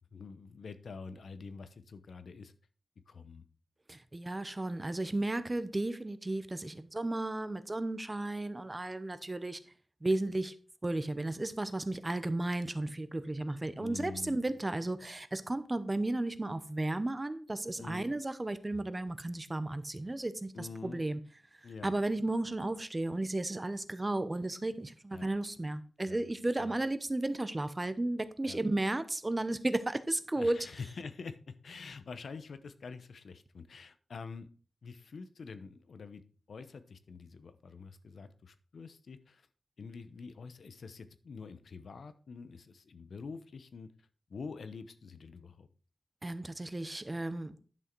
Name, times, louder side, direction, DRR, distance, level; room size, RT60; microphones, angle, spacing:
voice 1, 0.1-2.5 3.1-3.4 13.8-14.4 17.8-18.2 20.5-21.1 21.6-22.0 25.1-25.3 26.1-26.2 26.6-26.7 28.4-28.6 30.4-34.5 34.8-36.2 36.5-39.5 39.8-45.7, left 4 dB, 75° left, 0.9 m, -46 dB
voice 2, 3.9-9.6 10.0-10.5 10.8-21.2 21.8-30.6 46.2-47.6, right 2 dB, 20° right, 0.7 m, -34 dB
11.0 x 6.3 x 4.6 m
wide cardioid pair, 150°, 0 cm